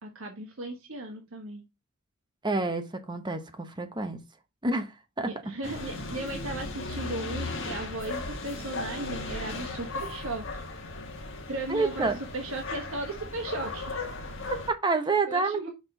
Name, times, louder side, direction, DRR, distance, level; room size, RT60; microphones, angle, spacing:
voice 1, 0.0-1.6 5.2-10.6 11.5-12.1 12.3-14.0 15.3-15.7, right 2 dB, 65° right, 1.4 m, -36 dB
voice 2, 2.4-4.2 4.6-5.3 11.7-12.2 14.7-15.6, right 3 dB, 20° right, 0.9 m, -28 dB
sound 1, 5.6-14.7, left 3 dB, 60° left, 1.5 m, -36 dB
5.9 x 4.5 x 5.2 m
head